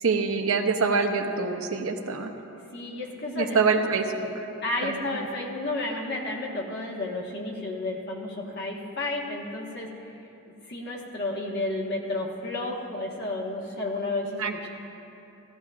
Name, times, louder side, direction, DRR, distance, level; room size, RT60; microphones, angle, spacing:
voice 1, 0.0-2.3 3.3-4.0 4.8-5.2 14.4-14.7, right 4 dB, 75° right, 4 dB, 0.8 m, -25 dB
voice 2, 2.7-3.9 4.6-10.1 10.6-14.7, left 2 dB, 50° left, -2 dB, 1.4 m, -32 dB
16.5 x 13.0 x 2.5 m, 2.8 s
head